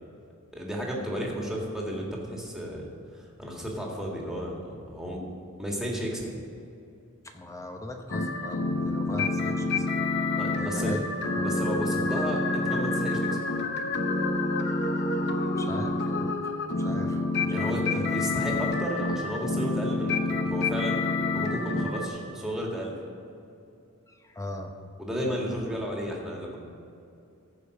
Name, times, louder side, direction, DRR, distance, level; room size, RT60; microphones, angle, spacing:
voice 1, 0.5-2.9 3.1-5.2 5.6-6.3 10.4-11.0 11.4-13.4 17.5-20.2 20.5-21.0 21.3-22.9 25.0-26.6, equal, ahead, -2 dB, 1.8 m, -33 dB
voice 2, 7.2-9.9 10.6-11.0 15.6-16.4 16.7-18.1 24.1-24.7, left 1 dB, 15° left, 4 dB, 0.8 m, -39 dB
sound 1, 8.1-22.1, left 2 dB, 50° left, 0.8 m, -28 dB
14.5 x 5.2 x 6.4 m, 2.6 s
head